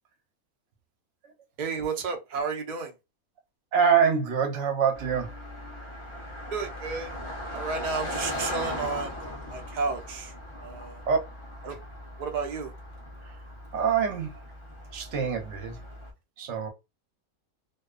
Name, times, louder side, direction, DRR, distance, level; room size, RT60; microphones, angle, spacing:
voice 1, 1.6-3.0 6.5-7.2 7.5-10.3 10.6-11.0 11.6-11.8 12.2-12.7, right 5 dB, 80° right, 0.4 m, -32 dB
voice 2, 3.7-5.3 11.1-11.2 13.2-13.3 13.7-14.3 14.9-15.8 16.4-16.7, right 7 dB, 60° right, 0.8 m, -25 dB
Car passing by, 4.9-16.1, left 1 dB, 55° left, 0.3 m, -38 dB
2.6 x 2.2 x 2.3 m
omnidirectional pair, 1.5 m